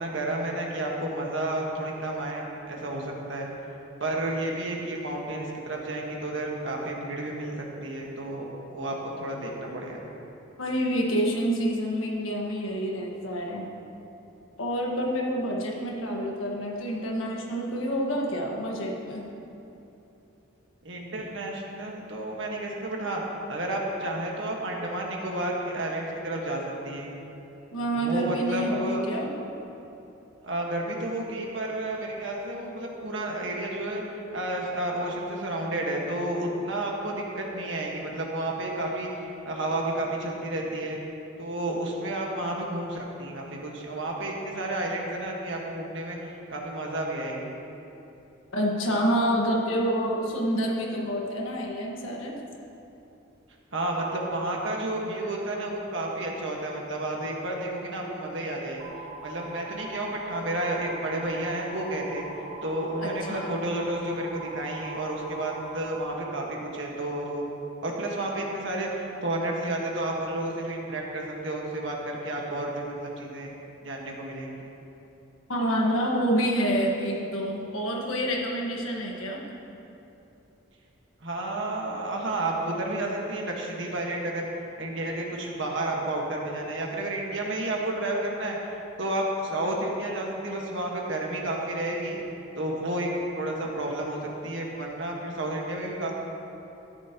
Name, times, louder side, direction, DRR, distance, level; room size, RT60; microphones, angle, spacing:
voice 1, 0.0-3.5 4.0-7.5 7.8-10.0 20.8-23.2 23.5-27.1 27.9-29.0 30.4-34.0 34.3-39.1 39.4-41.0 41.4-47.5 53.7-58.9 59.2-62.2 62.6-67.4 67.8-73.5 73.8-74.7 81.2-84.5 84.8-88.6 89.0-92.2 92.6-93.1 93.4-96.2, right 1 dB, 65° right, -1 dB, 1.5 m, -31 dB
voice 2, 10.6-13.6 14.6-19.3 21.2-21.3 27.7-29.3 48.5-52.4 63.0-63.6 75.5-79.4, equal, 80° left, -1 dB, 1.5 m, -28 dB
sound 1, 58.8-66.1, right 2 dB, 30° right, 0.7 m, -42 dB
13.5 x 10.5 x 3.0 m, 2.9 s
head